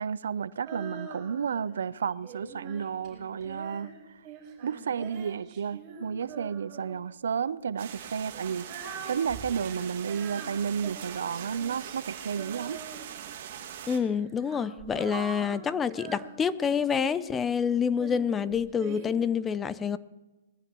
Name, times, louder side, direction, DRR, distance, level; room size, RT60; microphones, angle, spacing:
voice 1, 0.0-3.9 4.6-8.7 9.1-12.8, right 7 dB, 75° right, 0.5 m, -32 dB
Female singing, 0.7-1.7 2.2-7.1 7.8-13.4 14.2-17.3 18.0-19.1, right 6 dB, 25° right, 4.9 m, -44 dB
sound 1, 7.8-14.0, right 9 dB, 50° right, 2.1 m, -42 dB
voice 2, 13.9-20.0, left 7 dB, 15° left, 0.4 m, -27 dB
21.0 x 14.5 x 3.0 m
hypercardioid pair, 150°, 0 cm